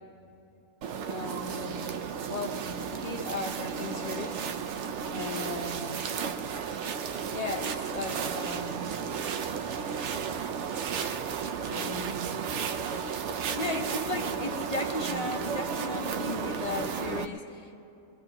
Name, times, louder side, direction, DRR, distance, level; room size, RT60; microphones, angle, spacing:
sound 1, 0.8-17.2, right 6 dB, 60° right, 0.8 m, -33 dB
voice 1, 1.1-4.4 5.1-6.2 7.3-9.0 11.7-12.5 13.5-17.8, left 2 dB, 30° left, 3 dB, 0.8 m, -36 dB
23.0 x 20.5 x 2.9 m, 2.8 s
omnidirectional pair, 1.6 m